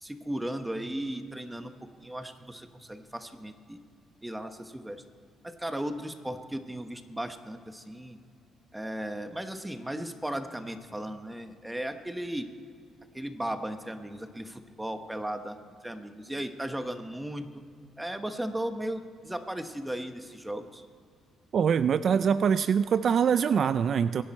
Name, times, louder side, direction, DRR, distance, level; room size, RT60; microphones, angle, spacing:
voice 1, 0.0-1.7 2.0-3.8 4.2-5.0 5.4-8.2 8.7-12.5 13.1-15.6 15.8-17.6 18.0-20.8, right 1 dB, 10° right, 8 dB, 1.1 m, -36 dB
voice 2, 21.5-24.2, right 7 dB, 55° right, 14 dB, 0.3 m, -24 dB
22.5 x 10.5 x 4.3 m, 2.2 s
cardioid pair, 90°, 0 cm